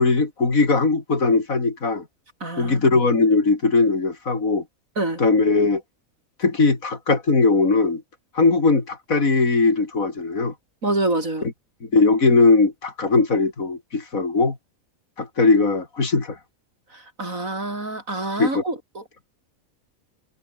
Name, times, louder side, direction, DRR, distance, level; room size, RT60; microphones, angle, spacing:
voice 1, 0.0-2.0 2.6-4.6 5.2-5.8 6.4-8.0 8.3-10.5 11.4-11.5 11.8-14.6 15.2-16.4 18.4-18.6, left 3 dB, 75° left, 3.8 m, -19 dB
voice 2, 2.4-2.8 5.0-5.2 10.8-11.4 16.9-19.0, right 2 dB, 70° right, 6.5 m, -26 dB
omnidirectional pair, 1.5 m